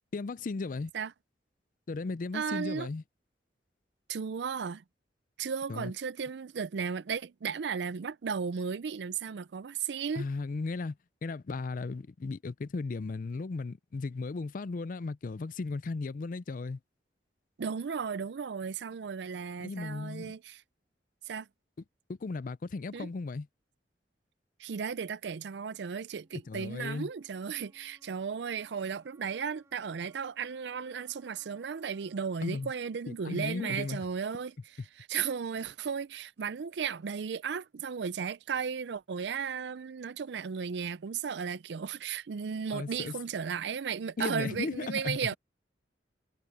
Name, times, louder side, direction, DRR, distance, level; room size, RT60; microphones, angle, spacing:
voice 1, 0.1-0.9 1.9-3.0 5.7-5.9 10.2-11.0 11.2-16.8 19.6-20.4 22.1-23.5 26.5-27.1 32.4-32.7 33.1-34.0 42.7-43.2 44.2-45.4, left 3 dB, 45° left, 0.4 m, -36 dB
voice 2, 2.3-2.9 4.1-4.8 5.4-10.3 17.6-20.6 21.3-21.5 22.9-23.1 24.6-34.5 35.0-45.4, right 6 dB, 70° right, 0.4 m, -35 dB
sound 1, 26.1-34.1, right 2 dB, 15° right, 3.1 m, -66 dB
head